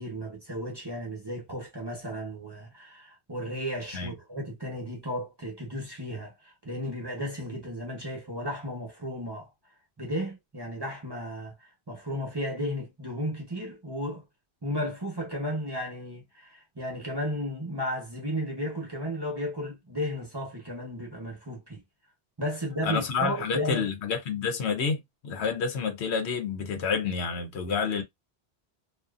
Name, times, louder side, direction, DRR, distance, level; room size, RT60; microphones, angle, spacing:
voice 1, 0.0-9.5 10.0-14.2 14.6-21.8 22.4-23.9, equal, 25° right, 0.8 m, -34 dB
voice 2, 22.8-28.0, left 5 dB, 80° left, 1.0 m, -29 dB
2.6 x 2.4 x 2.4 m
omnidirectional pair, 1.1 m